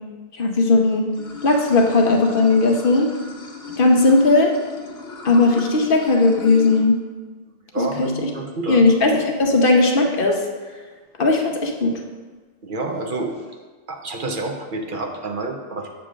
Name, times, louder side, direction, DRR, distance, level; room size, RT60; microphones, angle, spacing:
voice 1, 0.4-1.1 1.4-3.1 3.8-4.5 5.2-6.9 7.8-8.1 8.7-10.4 11.2-11.9, left 3 dB, 60° left, 2 dB, 1.0 m, -17 dB
Water / Sink (filling or washing), 1.1-6.8, left 3 dB, 75° left, 1.4 m, -36 dB
voice 2, 7.7-8.9 12.6-13.4 13.9-15.9, right 3 dB, 55° right, 3 dB, 0.8 m, -28 dB
8.1 x 3.1 x 6.2 m, 1.4 s
omnidirectional pair, 1.1 m